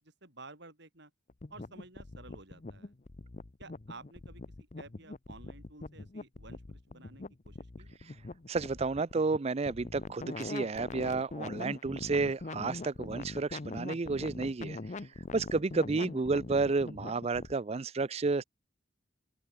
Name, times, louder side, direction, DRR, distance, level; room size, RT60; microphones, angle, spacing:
voice 1, 0.2-1.1 1.5-2.9 3.6-4.4 4.8-8.0, right 3 dB, 60° right, 5.9 m, -52 dB
sound 1, 1.3-17.5, left 2 dB, 35° left, 0.7 m, -43 dB
voice 2, 8.5-14.8 15.3-18.4, right 3 dB, 30° right, 0.4 m, -31 dB
open air
head